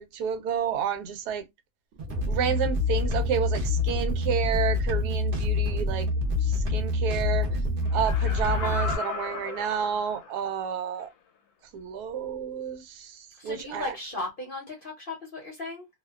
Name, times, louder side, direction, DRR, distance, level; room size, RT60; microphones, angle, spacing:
voice 1, 0.0-1.4 2.3-6.1 6.7-7.6 7.9-11.1 11.7-13.9, right 7 dB, 85° right, 1.1 m, -30 dB
sound 1, 1.9-8.9, left 2 dB, 60° right, 0.8 m, -26 dB
Laughter, 7.9-10.5 11.0-11.1, left 5 dB, 80° left, 1.1 m, -36 dB
voice 2, 13.4-15.9, left 2 dB, 50° left, 0.6 m, -36 dB
2.6 x 2.1 x 2.2 m
omnidirectional pair, 1.6 m